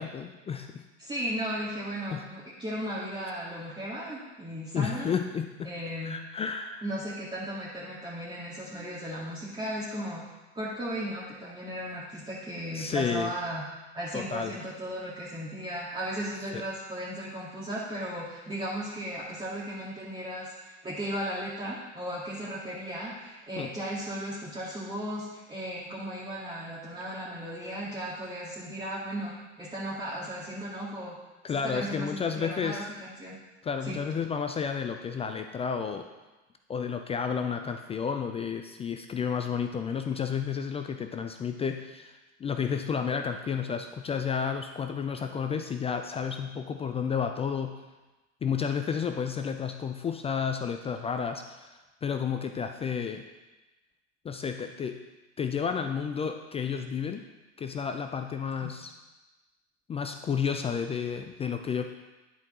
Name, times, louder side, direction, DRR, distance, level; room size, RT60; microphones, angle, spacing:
voice 1, 0.0-0.8 2.1-2.3 4.7-5.7 6.0-6.8 12.7-13.3 14.1-14.6 16.5-16.6 23.6-23.7 31.4-32.9 33.6-36.0 36.7-47.7 48.4-53.2 54.2-55.0 55.4-57.2 57.6-58.9 59.9-61.9, left 6 dB, 15° left, 6 dB, 0.3 m, -31 dB
voice 2, 1.0-5.1 5.6-6.2 6.8-10.2 10.5-13.6 13.9-29.3 29.6-31.2 31.5-33.4 33.8-34.0 58.6-58.7, equal, 15° right, -8 dB, 1.9 m, -36 dB
10.0 x 4.7 x 3.7 m, 1.1 s
hypercardioid pair, 85°, 37 cm